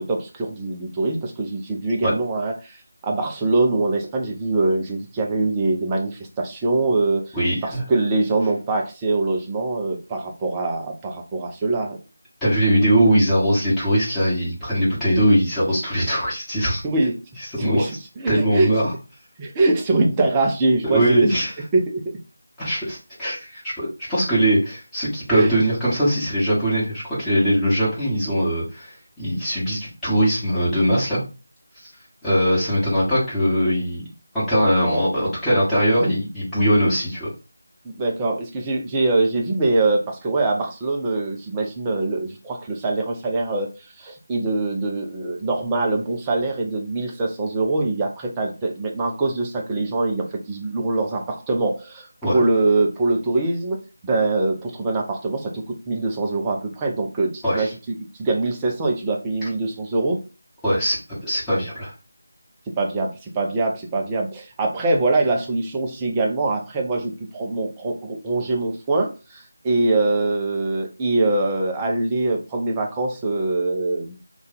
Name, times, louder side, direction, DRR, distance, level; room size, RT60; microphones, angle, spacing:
voice 1, 0.0-7.3 7.6-12.0 16.8-17.2 17.6-17.9 18.2-18.7 19.4-21.2 21.7-22.2 25.3-25.5 37.8-43.7 44.0-60.2 62.8-74.2, right 2 dB, 15° right, 1 dB, 0.5 m, -23 dB
voice 2, 7.3-7.8 12.4-16.8 17.5-17.8 18.3-18.9 20.8-21.5 22.6-31.2 32.2-34.0 34.3-37.3 52.2-52.4 57.4-57.7 60.6-61.0 61.2-61.9, equal, 5° left, -12 dB, 1.2 m, -21 dB
2.5 x 2.4 x 4.0 m, 0.31 s
figure-of-eight pair, 160°, 0 cm